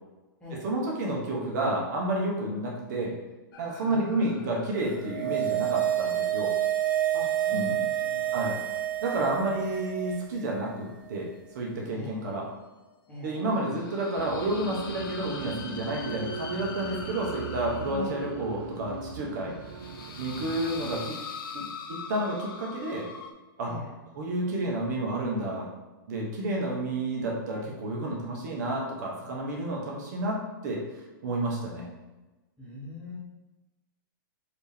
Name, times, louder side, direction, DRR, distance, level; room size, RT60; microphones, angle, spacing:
voice 1, 0.6-3.2 3.6-6.5 7.5-7.8 8.3-8.6 9.0-11.3 11.5-12.5 13.2-19.5 20.2-21.2 21.5-23.1 23.6-23.7 24.2-25.7 26.1-30.4 30.6-30.8 31.2-31.9, right 1 dB, 55° right, -2 dB, 1.0 m, -30 dB
sound 1, 3.5-7.0 7.3-7.4 10.9-11.4 11.9-23.3, left 5 dB, 80° left, 0.5 m, -43 dB
voice 2, 3.8-4.5 7.1-8.4 9.2-9.6 11.9-12.3 13.1-13.5 17.9-18.1 23.6-23.9 32.6-33.2, left 1 dB, 10° left, -7 dB, 1.0 m, -41 dB
sound 2, 4.9-10.4 10.7-10.8, right 12 dB, 10° right, 0.7 m, -28 dB
sound 3, 14.2-20.9, right 5 dB, 80° right, 0.4 m, -40 dB
4.3 x 2.8 x 3.5 m, 1.1 s
supercardioid pair, 160°, 12 cm